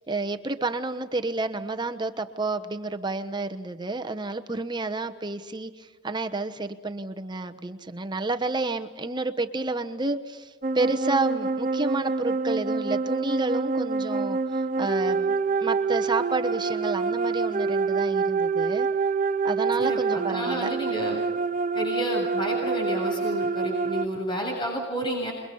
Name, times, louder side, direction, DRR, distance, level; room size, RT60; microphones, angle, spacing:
voice 1, 0.1-15.3 15.6-18.9 19.4-20.7, right 3 dB, 20° right, 7 dB, 1.0 m, -30 dB
sound 1, 10.6-24.0, right 4 dB, 40° right, 0.7 m, -26 dB
voice 2, 19.8-21.2 21.7-25.3, right 1 dB, 25° left, -1 dB, 7.5 m, -30 dB
29.0 x 23.0 x 5.5 m, 1.5 s
head